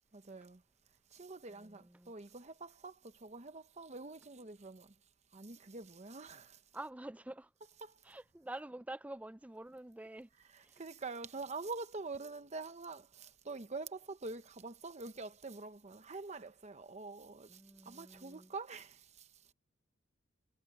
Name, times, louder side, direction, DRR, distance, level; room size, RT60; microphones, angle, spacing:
voice 1, 0.1-0.6 1.1-4.9 5.3-6.6 7.8-8.0 10.5-19.5, right 3 dB, 35° right, 1.0 m, -46 dB
voice 2, 1.5-2.1 6.7-7.5 8.0-10.3 10.6-10.8 17.5-18.5, right 1 dB, 5° right, 0.4 m, -48 dB
head